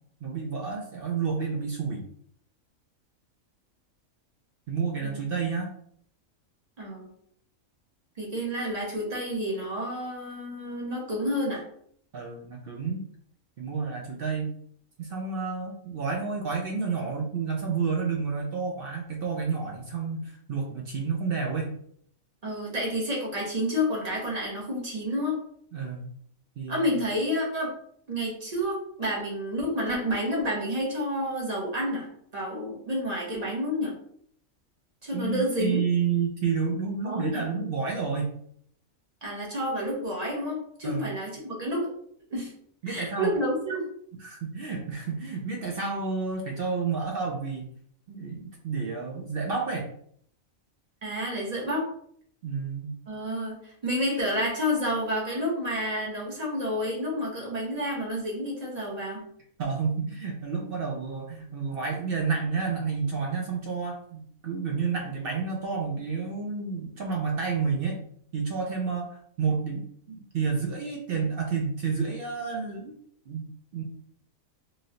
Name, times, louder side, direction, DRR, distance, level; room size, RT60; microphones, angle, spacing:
voice 1, 0.2-2.0 4.7-5.7 12.1-13.0 13.6-14.6 15.0-21.8 25.7-26.1 26.6-26.9 35.1-38.3 40.8-41.1 42.8-43.4 44.2-47.7 48.1-49.9 52.4-53.0 59.6-68.0 68.3-72.9 73.3-73.8, right 5 dB, 60° right, 0 dB, 0.6 m, -30 dB
voice 2, 6.8-7.1 8.2-11.6 22.4-25.4 26.7-27.7 28.1-33.9 35.0-35.8 37.0-37.5 39.2-41.9 42.3-42.5 42.9-43.9 51.0-51.9 53.1-59.2, equal, 35° right, -3 dB, 0.9 m, -29 dB
3.1 x 2.5 x 2.7 m, 0.64 s
omnidirectional pair, 1.4 m